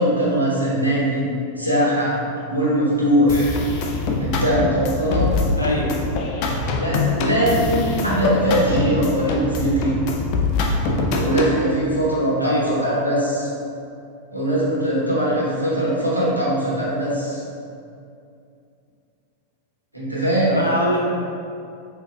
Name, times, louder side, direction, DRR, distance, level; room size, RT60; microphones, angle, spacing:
voice 1, 0.0-3.5 4.2-5.3 6.8-10.0 10.8-13.5 14.3-17.4 19.9-20.6, right 1 dB, 90° right, -7 dB, 1.0 m, -21 dB
sound 1, 3.3-11.6, left 3 dB, 45° left, 0.4 m, -23 dB
voice 2, 5.6-5.9 7.5-7.7 12.4-13.0 20.5-21.0, equal, 85° left, -4 dB, 0.7 m, -24 dB
6.3 x 2.7 x 2.3 m, 2.5 s
figure-of-eight pair, 90°, 0 cm